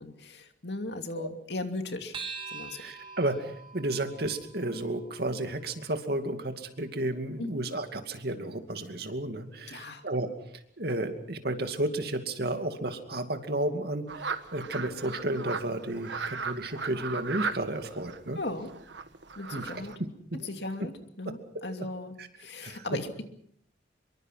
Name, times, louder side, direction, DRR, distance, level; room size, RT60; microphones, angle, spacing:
voice 1, 0.0-2.2 2.5-2.8 7.4-7.5 9.7-10.0 18.4-18.7 19.4-19.9 20.4-23.2, left 2 dB, 65° left, 6 dB, 2.7 m, -37 dB
sound 1, 2.1-6.9, right 5 dB, 30° right, 3.1 m, -45 dB
voice 2, 2.8-10.3 10.8-18.4 19.5-19.7 20.3-20.5 22.6-22.8, right 1 dB, 60° right, 6 dB, 2.5 m, -32 dB
sound 2, 14.1-20.0, right 5 dB, 80° right, 1.5 m, -37 dB
25.5 x 23.0 x 5.8 m, 0.67 s
head